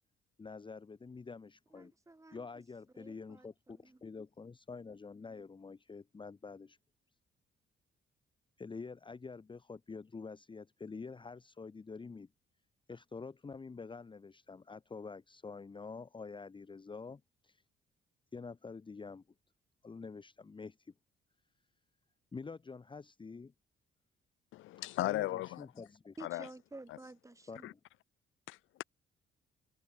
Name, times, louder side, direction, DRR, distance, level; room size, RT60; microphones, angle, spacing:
voice 1, 0.4-1.9 2.3-6.8 8.6-12.3 12.9-17.6 18.3-19.2 19.8-20.9 22.3-23.5 24.9-26.1 27.5-27.7, left 4 dB, 25° left, 1.0 m, -47 dB
voice 2, 1.7-2.5 2.9-4.0 26.2-27.7, right 2 dB, 15° right, 3.3 m, -52 dB
voice 3, 24.5-25.7 26.2-26.5 27.6-27.7 28.5-28.8, left 16 dB, 85° left, 0.9 m, -36 dB
cardioid pair, 90°, 20 cm